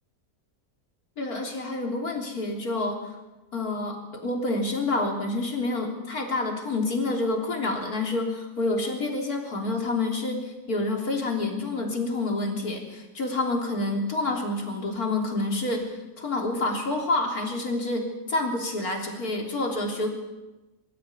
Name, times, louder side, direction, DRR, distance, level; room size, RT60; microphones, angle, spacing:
voice 1, 1.2-3.2 3.5-15.8 16.2-20.1, left 2 dB, 70° left, 1 dB, 3.9 m, -28 dB
23.5 x 13.5 x 9.5 m, 1.1 s
omnidirectional pair, 1.6 m